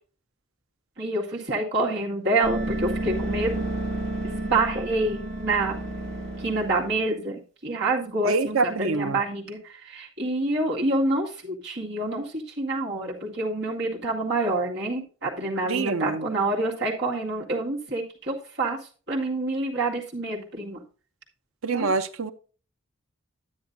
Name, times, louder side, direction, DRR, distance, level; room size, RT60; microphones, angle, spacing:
voice 1, 1.0-3.6 4.2-5.8 6.4-9.6 9.8-18.8 19.1-20.8 21.7-21.9, right 2 dB, 55° right, -3 dB, 2.0 m, -27 dB
sound 1, 2.4-7.0, right 1 dB, 35° right, 2.0 m, -31 dB
voice 2, 8.2-9.2 15.7-16.3 21.6-22.3, right 4 dB, 85° right, 10 dB, 0.7 m, -25 dB
9.8 x 9.5 x 2.6 m, 0.38 s
head